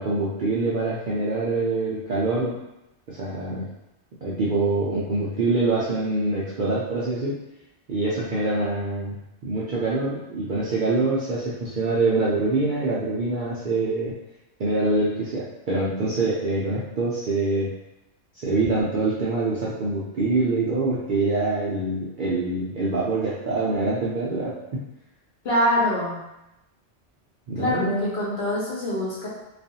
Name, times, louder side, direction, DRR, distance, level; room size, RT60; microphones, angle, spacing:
voice 1, 0.0-2.6 3.1-3.7 4.2-7.4 7.9-9.2 9.4-14.1 14.6-17.7 18.4-24.8 27.5-28.1, right 2 dB, 60° right, -7 dB, 0.5 m, -25 dB
voice 2, 25.4-26.2 27.6-29.3, equal, 60° left, -6 dB, 1.0 m, -24 dB
2.4 x 2.3 x 2.7 m, 0.90 s
omnidirectional pair, 1.2 m